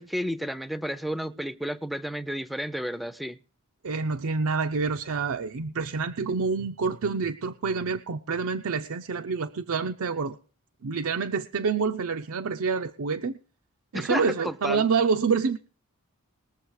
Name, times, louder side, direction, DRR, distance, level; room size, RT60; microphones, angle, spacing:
voice 1, 0.0-3.4 13.9-14.9, equal, ahead, 0.5 m, -32 dB
voice 2, 3.8-10.4 10.8-13.4 13.9-15.6, right 5 dB, 70° right, 0.6 m, -27 dB
20.5 x 7.2 x 4.7 m
head